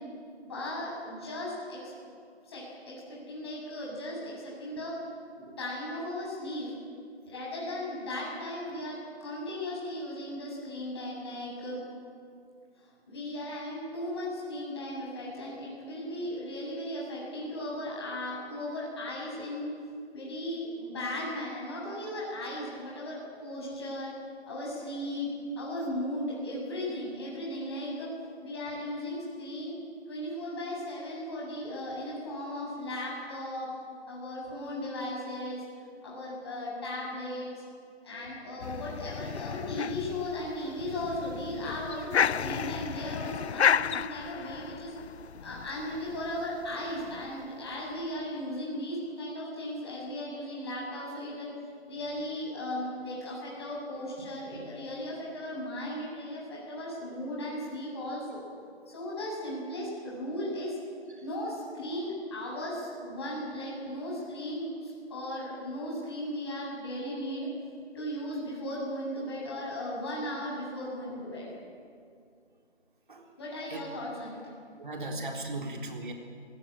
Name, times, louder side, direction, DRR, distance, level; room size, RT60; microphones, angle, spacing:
voice 1, 0.4-1.9 2.5-5.0 5.3-6.7 7.2-11.8 12.8-19.7 20.1-24.1 24.5-25.3 25.6-28.1 28.4-29.8 30.1-33.7 34.1-35.6 36.0-37.5 38.0-45.0 45.4-51.5 51.9-58.4 58.9-60.8 61.2-67.5 67.9-71.5 73.4-74.4, left 1 dB, 25° left, -5 dB, 7.8 m, -36 dB
sound 1, 38.6-47.7, left 7 dB, 70° left, 0.5 m, -32 dB
voice 2, 74.8-76.1, right 2 dB, 45° right, 2 dB, 3.7 m, -37 dB
25.5 x 17.5 x 8.9 m, 2.3 s
figure-of-eight pair, 170°, 33 cm